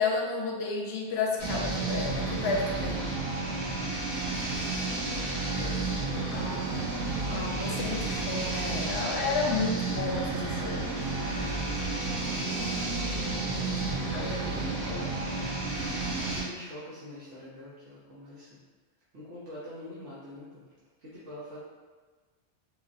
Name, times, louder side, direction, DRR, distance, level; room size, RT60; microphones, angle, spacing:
voice 1, 0.0-3.0 6.3-6.8 7.3-10.9 14.1-15.2, left 4 dB, 70° left, 0 dB, 0.8 m, -32 dB
sound 1, 1.4-16.4, right 3 dB, 35° right, 0.8 m, -31 dB
voice 2, 5.5-7.1 14.1-14.7 16.2-18.6 19.1-20.6 21.0-21.6, left 1 dB, 85° right, -10 dB, 1.1 m, -45 dB
3.4 x 2.5 x 2.5 m, 1.4 s
omnidirectional pair, 1.2 m